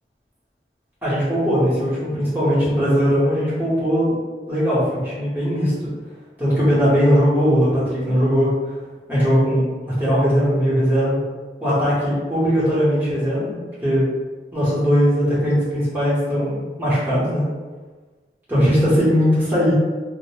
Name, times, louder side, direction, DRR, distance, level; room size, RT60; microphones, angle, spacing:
voice 1, 1.0-4.2 4.5-5.9 6.4-8.5 9.1-9.6 10.0-11.2 11.6-13.6 13.8-14.0 14.5-17.5 18.5-19.7, equal, 10° right, -10 dB, 0.9 m, -19 dB
2.1 x 2.0 x 3.0 m, 1.3 s
head